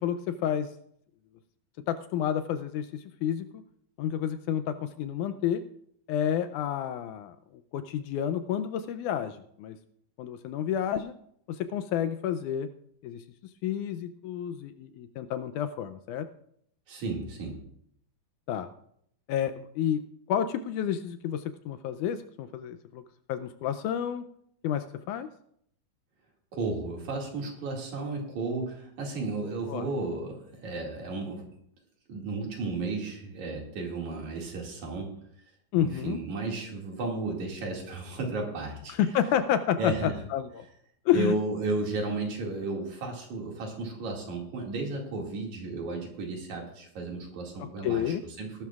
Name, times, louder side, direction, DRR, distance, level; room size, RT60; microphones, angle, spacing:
voice 1, 0.0-0.7 1.9-3.6 4.0-5.6 6.1-7.4 7.7-9.8 10.2-11.1 11.6-12.7 13.0-13.2 13.6-16.3 18.5-18.7 19.3-20.0 20.3-23.0 23.3-24.2 24.6-25.3 29.7-29.8 35.7-36.2 39.0-40.7 41.1-41.3 47.8-48.2, left 9 dB, 80° left, 10 dB, 1.9 m, -30 dB
voice 2, 16.9-17.7 26.5-31.4 32.1-35.1 35.8-38.9 39.8-40.1 41.1-48.7, right 3 dB, 60° right, 0 dB, 3.5 m, -33 dB
19.0 x 12.0 x 2.4 m, 0.69 s
omnidirectional pair, 3.8 m